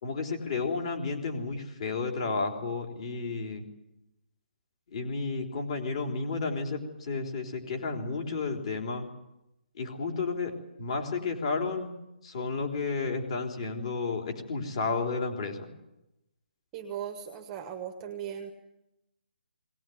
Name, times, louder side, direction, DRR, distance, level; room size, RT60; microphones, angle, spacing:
voice 1, 0.0-3.6 4.9-9.1 9.8-10.5 10.8-11.9 12.2-15.7, left 4 dB, 35° left, 3 dB, 3.7 m, -32 dB
voice 2, 16.7-18.5, right 9 dB, 10° right, 5 dB, 1.2 m, -38 dB
20.5 x 19.0 x 9.4 m, 0.90 s
hypercardioid pair, 170°, 6 cm